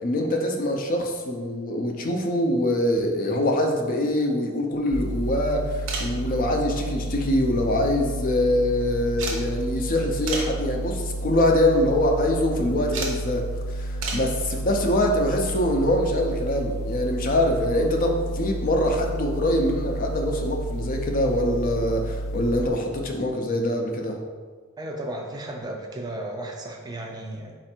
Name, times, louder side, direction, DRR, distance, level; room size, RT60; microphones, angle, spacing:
voice 1, 0.0-13.5 13.7-24.2, left 1 dB, 40° left, 2 dB, 0.5 m, -24 dB
sound 1, 4.9-22.7, right 1 dB, 85° left, 0.6 m, -31 dB
sound 2, 5.9-6.2 7.4-8.1 8.3-8.4 9.2-9.4 10.3-10.6 11.3-11.5 12.9-13.2 14.0-14.3 16.0-16.1 17.4-17.5 17.7-17.8, right 3 dB, 90° right, 0.8 m, -32 dB
voice 2, 24.8-27.6, right 1 dB, 20° right, 1 dB, 0.4 m, -34 dB
4.3 x 2.5 x 4.3 m, 1.5 s
head